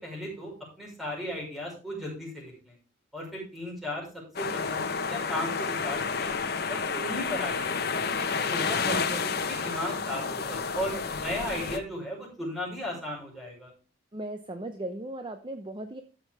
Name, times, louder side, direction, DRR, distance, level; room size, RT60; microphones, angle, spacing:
voice 1, 0.0-2.8 3.1-4.1 4.4-6.3 6.7-9.1 9.5-13.7, left 1 dB, ahead, -4 dB, 5.5 m, -36 dB
sound 1, 4.4-11.8, left 5 dB, 55° left, 1.1 m, -30 dB
voice 2, 8.8-9.3 14.1-16.0, right 1 dB, 25° right, 7 dB, 0.7 m, -37 dB
13.5 x 6.2 x 3.4 m, 0.36 s
head